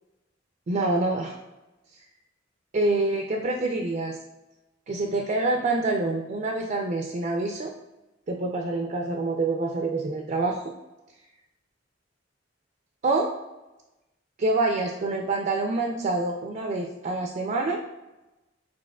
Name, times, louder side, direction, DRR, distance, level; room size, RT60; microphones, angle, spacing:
voice 1, 0.7-1.4 2.7-4.2 4.9-7.7 8.3-10.6 13.0-13.3 14.4-17.8, right 2 dB, 40° right, 2 dB, 0.4 m, -26 dB
6.9 x 2.9 x 2.2 m, 1.0 s
head